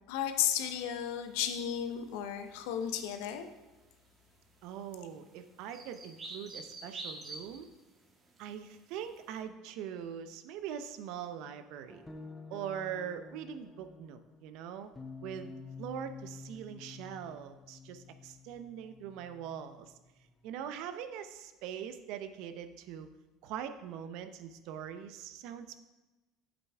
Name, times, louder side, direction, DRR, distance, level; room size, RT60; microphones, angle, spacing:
voice 1, 0.0-3.5, left 10 dB, 75° left, 8 dB, 0.8 m, -34 dB
sound 1, 0.6-9.3, right 2 dB, 30° right, 1.6 m, -49 dB
voice 2, 4.6-7.7 8.4-12.0 12.5-14.9 15.2-15.5 15.8-19.9 20.4-23.1 23.4-25.8, right 9 dB, 70° right, 10 dB, 0.6 m, -42 dB
sound 2, 11.9-20.7, left 4 dB, 15° left, 0.9 m, -50 dB
8.1 x 7.6 x 3.5 m, 1.1 s
supercardioid pair, 90°, 0 cm